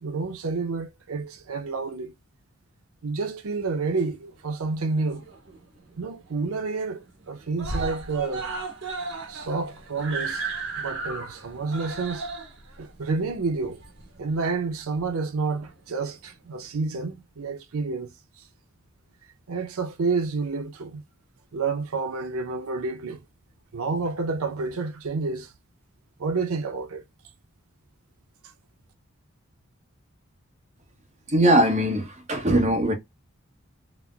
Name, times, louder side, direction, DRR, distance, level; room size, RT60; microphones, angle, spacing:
voice 1, 0.0-2.1 3.0-5.2 6.0-8.5 9.3-10.5 10.8-12.3 12.8-13.8 14.2-18.1 18.4-18.5 19.5-21.0 21.5-23.2 23.7-25.5 26.2-27.0, right 4 dB, 85° right, 0.5 m, -29 dB
Screaming, 4.7-5.6 5.9-6.0 6.4-6.5 6.8-7.2 7.6-14.4 15.2-15.3, right 3 dB, 65° right, 1.0 m, -34 dB
voice 2, 31.3-32.9, right 1 dB, 30° right, 0.8 m, -20 dB
4.1 x 2.0 x 2.2 m
head